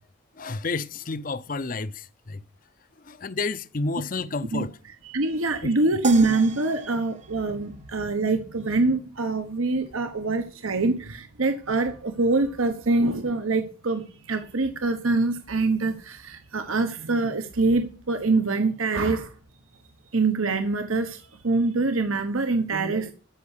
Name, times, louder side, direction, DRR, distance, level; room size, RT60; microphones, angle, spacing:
voice 1, 0.4-2.4 3.0-4.8 5.6-5.7, left 3 dB, 40° left, 0.6 m, -30 dB
voice 2, 5.1-19.3 20.1-23.1, right 3 dB, 85° right, 1.2 m, -24 dB
sound 1, 6.0-8.4, right 4 dB, 35° right, 0.8 m, -38 dB
13.5 x 5.8 x 8.3 m
head